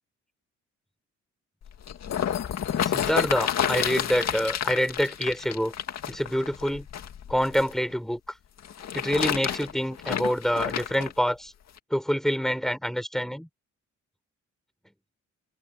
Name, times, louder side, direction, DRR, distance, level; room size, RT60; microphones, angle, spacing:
sound 1, 1.6-7.7 8.6-11.1 11.8-11.9, left 9 dB, 60° left, 2.2 m, -29 dB
voice 1, 2.8-5.7 6.1-6.9 7.3-8.2 8.9-11.5 11.9-13.5, equal, ahead, 5.0 m, -26 dB
open air
cardioid pair, 90°, 30 cm